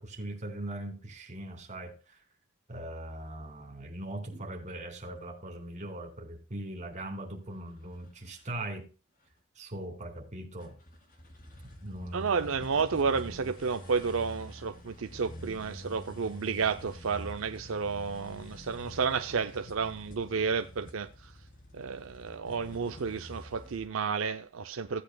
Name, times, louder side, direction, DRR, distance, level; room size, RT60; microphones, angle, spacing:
voice 1, 0.0-2.2 2.7-8.9 9.5-10.8 11.8-12.5, right 1 dB, 35° right, 2.7 m, -40 dB
sound 1, 7.5-8.6 9.3-9.4 10.6-23.9, equal, 40° left, 2.3 m, -47 dB
voice 2, 12.1-21.3 21.7-25.0, right 5 dB, 65° right, 0.5 m, -31 dB
16.0 x 8.5 x 2.2 m
head